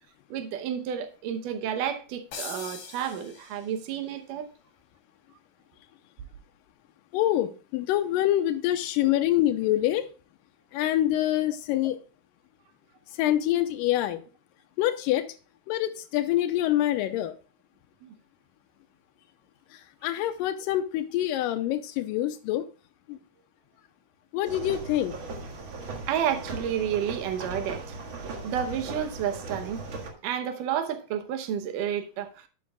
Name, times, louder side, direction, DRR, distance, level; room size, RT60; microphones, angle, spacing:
voice 1, 0.3-4.5 18.0-18.1 26.1-28.0 28.4-29.8 30.2-32.5, right 9 dB, 75° right, 2.5 m, -31 dB
sound 1, 2.3-3.9, left 6 dB, 55° left, 2.7 m, -41 dB
voice 2, 7.1-10.1 10.7-12.0 13.2-14.2 14.8-15.3 15.7-17.3 19.7-22.7 23.1-23.2 24.3-25.1, left 13 dB, 90° left, 2.3 m, -26 dB
sound 2, 24.4-30.1, right 3 dB, 45° right, 1.8 m, -38 dB
11.5 x 8.5 x 2.3 m
omnidirectional pair, 3.8 m